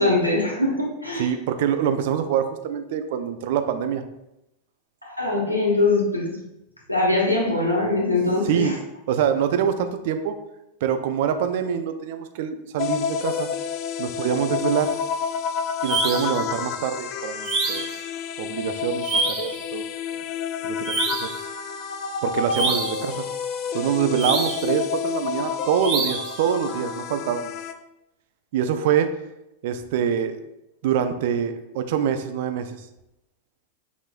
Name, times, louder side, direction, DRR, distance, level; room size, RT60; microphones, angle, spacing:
voice 1, 0.0-1.3 5.0-6.4 6.9-8.7, left 2 dB, 85° left, -3 dB, 1.2 m, -22 dB
voice 2, 1.2-4.0 8.4-8.8 9.1-10.3 10.8-13.5 14.0-15.0 15.8-17.9 18.4-19.8 20.6-21.0 22.2-23.2 23.7-27.5 28.5-29.2 29.6-30.4 30.8-32.8, right 8 dB, 50° right, 8 dB, 0.4 m, -25 dB
sound 1, 12.8-27.7, left 7 dB, 40° left, 0.3 m, -29 dB
sound 2, 15.8-16.4 17.4-18.0 19.0-19.6 20.8-21.4 22.5-23.1 24.2-24.7 25.8-26.4, right 4 dB, 35° right, 0.8 m, -26 dB
6.0 x 3.0 x 2.5 m, 0.89 s
figure-of-eight pair, 90°, 0 cm